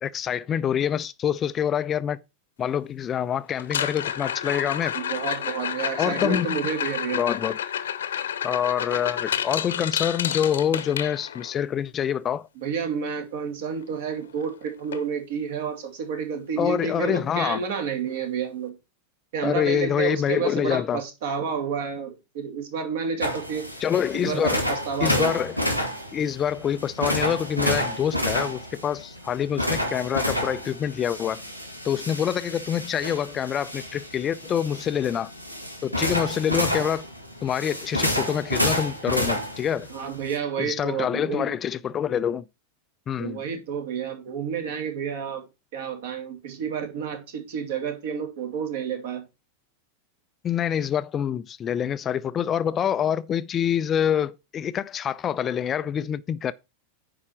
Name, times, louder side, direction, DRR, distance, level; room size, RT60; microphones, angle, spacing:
voice 1, 0.0-2.2 2.6-5.0 5.9-6.5 7.1-7.6 8.4-12.5 16.6-17.6 19.4-21.0 23.8-24.6 25.0-25.6 26.1-31.4 31.8-35.3 35.8-37.1 37.4-39.9 40.6-42.4 43.1-43.4 50.4-56.5, left 9 dB, 25° left, 0.4 m, -26 dB
sound 1, 3.6-11.6 13.8-13.9 14.2-14.5 14.9-15.0 15.6-15.7 17.6-17.7, left 9 dB, 65° left, 0.8 m, -30 dB
voice 2, 4.9-7.2 12.6-18.7 19.3-23.7 24.1-25.3 39.9-41.5 43.2-45.4 45.7-49.2, right 6 dB, 55° right, 2.8 m, -30 dB
sound 2, 23.2-40.4, equal, 90° right, 1.8 m, -29 dB
9.7 x 4.8 x 5.9 m
figure-of-eight pair, 90°, 0 cm